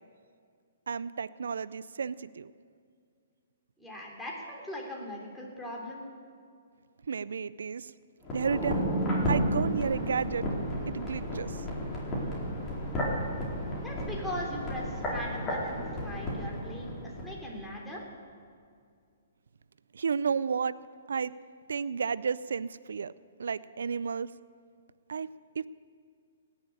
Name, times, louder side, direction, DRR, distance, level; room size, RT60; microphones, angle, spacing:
voice 1, 0.9-2.5 7.1-7.9 8.3-8.8 9.3-10.5 10.9-11.7 19.9-20.7 21.1-21.3 21.7-23.1 23.4-24.3 25.1-25.3 25.6-25.7, right 6 dB, 75° right, 17 dB, 0.4 m, -32 dB
voice 2, 3.8-6.0 13.8-16.9 17.2-18.0, equal, 5° left, -3 dB, 3.2 m, -39 dB
sound 1, 8.2-17.3 17.6-17.7, equal, 20° left, 4.4 m, -32 dB
17.5 x 7.2 x 8.8 m, 2.2 s
hypercardioid pair, 135°, 0 cm